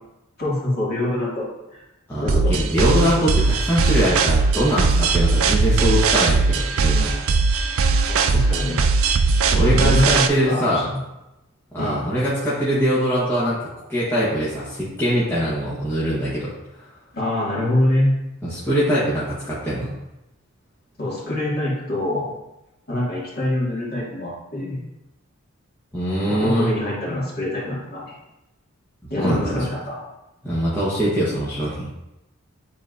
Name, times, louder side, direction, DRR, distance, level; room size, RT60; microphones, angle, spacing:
voice 1, 0.4-1.5 1.7-1.8 2.2-2.5 8.1-8.8 9.7-11.0 11.8-12.1 17.1-18.1 21.0-22.3 22.9-24.8 26.3-28.2 29.1-30.0, left 1 dB, 45° left, -7 dB, 2.3 m, -24 dB
voice 2, 2.1-7.1 9.5-10.9 11.7-13.6 13.9-16.5 16.8-16.9 18.4-19.9 25.9-26.7 29.2-29.7 30.4-31.9, equal, 10° left, -9 dB, 1.2 m, -22 dB
sound 1, 2.3-10.3, right 4 dB, 70° right, 0.4 m, -19 dB
9.0 x 4.1 x 2.6 m, 0.94 s
head